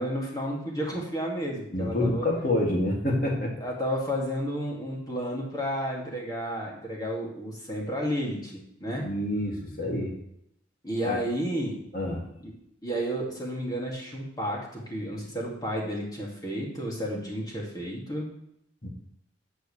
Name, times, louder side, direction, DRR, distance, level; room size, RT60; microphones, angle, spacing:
voice 1, 0.0-2.3 3.6-9.1 10.8-11.8 12.4-12.5 12.8-18.3, equal, 20° left, -2 dB, 2.5 m, -32 dB
voice 2, 1.7-3.5 9.0-10.1 11.0-11.2 11.9-12.3 18.8-18.9, left 1 dB, 50° left, -1 dB, 2.5 m, -27 dB
13.0 x 8.0 x 3.4 m, 0.76 s
head